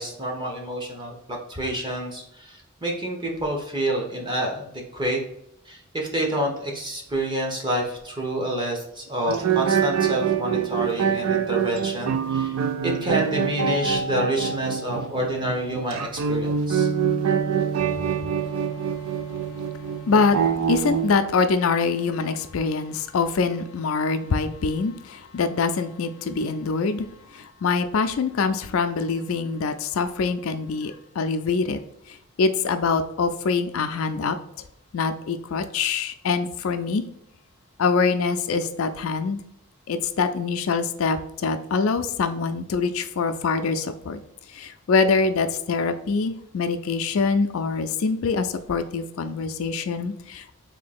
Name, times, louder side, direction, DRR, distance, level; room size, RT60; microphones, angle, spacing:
voice 1, 0.0-5.2 5.7-12.5 12.8-16.9, right 1 dB, 20° right, 0 dB, 1.0 m, -28 dB
sound 1, 9.3-21.1, right 7 dB, 70° right, 0.4 m, -25 dB
voice 2, 20.1-20.4 20.7-31.8 32.1-34.4 34.9-37.0 37.8-39.4 39.9-44.2 44.5-50.5, left 4 dB, 75° left, 9 dB, 0.4 m, -24 dB
3.8 x 2.7 x 4.2 m, 0.78 s
head